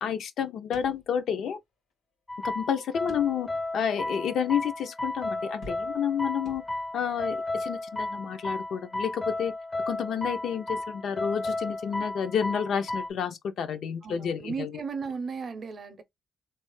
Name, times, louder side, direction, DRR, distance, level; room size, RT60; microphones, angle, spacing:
voice 1, 0.0-1.6 2.4-6.6 6.9-9.5 9.9-14.8, left 8 dB, 75° left, 0.5 m, -30 dB
sound 1, 0.7-1.6 1.9-2.0 3.1-3.7 4.2-4.3 5.6-6.2 6.5-7.1, left 2 dB, 90° left, 1.7 m, -49 dB
sound 2, 2.3-13.1, left 2 dB, 20° left, 0.4 m, -34 dB
voice 2, 14.0-16.0, right 5 dB, 45° right, 0.5 m, -35 dB
3.2 x 2.0 x 3.1 m
cardioid pair, 135°, 0 cm